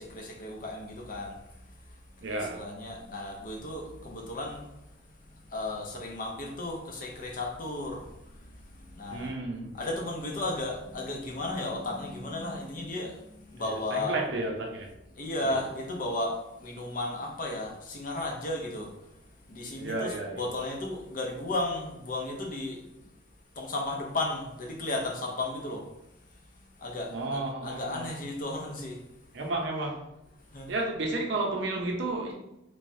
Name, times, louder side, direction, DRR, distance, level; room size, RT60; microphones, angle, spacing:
voice 1, 0.0-1.4 2.3-4.7 5.5-9.3 9.7-14.1 15.1-18.9 19.5-22.9 23.6-25.8 26.8-29.0 30.5-30.7, left 2 dB, 45° left, 0.6 m, -34 dB
voice 2, 2.2-2.6 9.1-9.7 13.6-14.9 15.4-15.6 19.8-20.5 27.1-28.1 29.3-30.1 30.7-32.3, right 2 dB, 60° right, 0.6 m, -32 dB
3.3 x 3.1 x 2.7 m
head